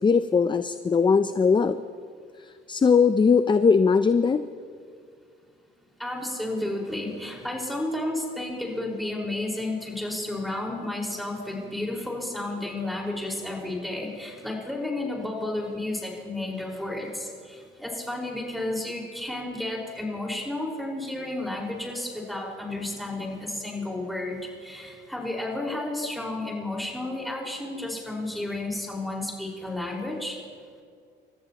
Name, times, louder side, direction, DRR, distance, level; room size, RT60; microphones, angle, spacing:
voice 1, 0.0-1.8 2.7-4.4, left 5 dB, 25° left, 11 dB, 0.5 m, -20 dB
voice 2, 6.0-30.4, left 2 dB, ahead, -3 dB, 4.7 m, -32 dB
29.5 x 14.0 x 2.9 m, 2.2 s
cardioid pair, 90°, 20 cm